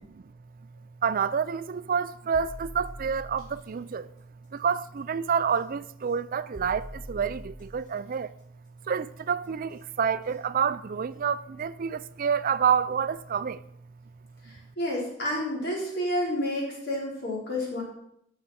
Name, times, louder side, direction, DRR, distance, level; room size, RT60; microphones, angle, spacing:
voice 1, 1.0-4.1 4.5-8.3 8.9-13.6, right 6 dB, 50° right, 0.4 m, -28 dB
sound 1, 2.3-3.6 5.5-5.6 6.5-7.9 9.7-9.8 10.3-10.4, equal, 25° left, 2.9 m, -43 dB
voice 2, 14.8-17.8, left 1 dB, 60° left, 4.6 m, -29 dB
12.5 x 6.6 x 5.8 m
head